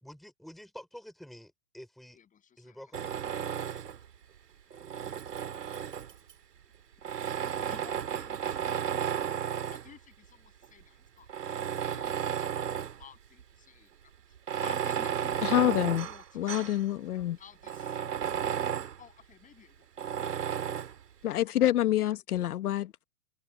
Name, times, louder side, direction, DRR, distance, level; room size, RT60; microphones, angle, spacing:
voice 1, 0.0-2.2 2.6-3.0, equal, ahead, 3.7 m, -48 dB
voice 2, 2.1-3.8 4.9-5.2 7.6-8.7 9.1-9.3 9.7-14.4 14.6-16.6 17.4-18.6 19.0-20.9 21.3-21.7 22.1-22.2, left 8 dB, 15° left, 7.2 m, -55 dB
Tools, 2.9-4.1 4.7-6.3 7.0-9.9 10.6-10.7 11.3-13.0 13.4-13.5 14.4-16.8 17.2-17.3 17.6-19.0 20.0-21.0, right 9 dB, 90° right, 2.5 m, -33 dB
voice 3, 15.4-16.1 16.4-17.4 21.2-23.0, left 12 dB, 70° left, 1.4 m, -27 dB
hypercardioid pair, 145°, 47 cm